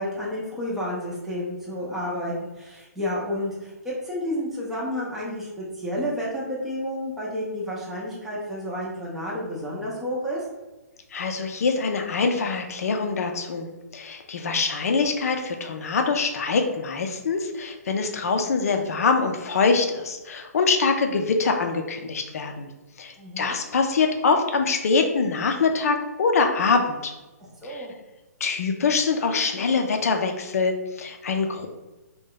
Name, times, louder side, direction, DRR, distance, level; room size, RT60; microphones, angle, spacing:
voice 1, 0.0-10.4 23.2-23.5 27.6-27.9, left 1 dB, 5° right, -6 dB, 0.6 m, -30 dB
voice 2, 11.1-22.7 23.0-27.1 27.7-27.9 28.4-31.7, left 4 dB, 60° left, 4 dB, 0.5 m, -24 dB
2.8 x 2.2 x 3.7 m, 1.1 s
figure-of-eight pair, 135°, 9 cm